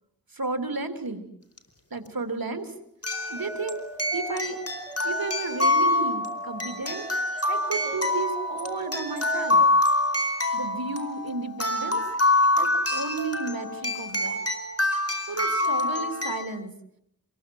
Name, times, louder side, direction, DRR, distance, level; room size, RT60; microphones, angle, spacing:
voice 1, 0.3-1.2 1.9-2.7 3.3-3.8 4.1-4.6 5.0-7.0 7.5-9.6 10.5-12.0 12.6-14.4 15.3-16.7, right 3 dB, 90° right, 7 dB, 3.1 m, -33 dB
sound 1, 1.6-1.7 3.0-16.4, left 2 dB, 45° left, 4.5 m, -26 dB
sound 2, 3.1-9.7, left 1 dB, 5° left, 4.9 m, -42 dB
28.0 x 22.0 x 7.8 m, 0.75 s
wide cardioid pair, 40°, 34 cm